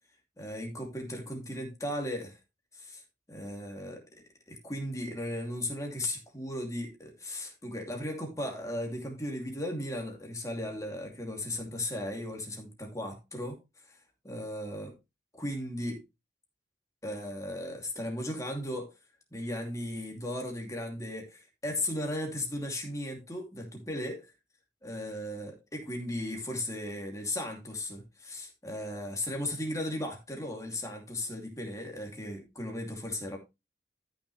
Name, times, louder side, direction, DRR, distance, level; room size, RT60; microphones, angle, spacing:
voice 1, 0.4-2.4 2.7-3.0 3.3-13.6 13.9-14.0 14.2-14.9 15.3-16.0 17.0-18.9 19.3-24.3 24.8-33.4, left 1 dB, 20° left, 2.7 m, -36 dB
13.5 x 6.3 x 3.2 m
head